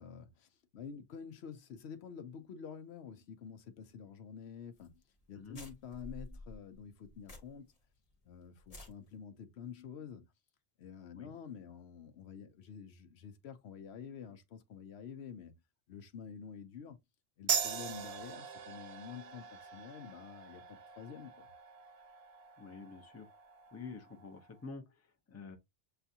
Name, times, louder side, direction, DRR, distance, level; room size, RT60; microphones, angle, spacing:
voice 1, 0.0-5.0 5.3-7.7 8.2-10.3 10.8-15.5 15.9-17.0 17.4-21.5, left 7 dB, 70° left, 0.9 m, -49 dB
sound 1, 4.8-4.9 5.2-5.3 5.5-7.8 8.1-8.2 8.6-8.9, left 2 dB, 35° left, 1.0 m, -50 dB
sound 2, 17.5-24.6, right 7 dB, 65° right, 0.9 m, -41 dB
voice 2, 22.6-23.3 23.7-25.6, left 4 dB, 20° left, 0.5 m, -48 dB
6.6 x 2.3 x 2.7 m
omnidirectional pair, 1.2 m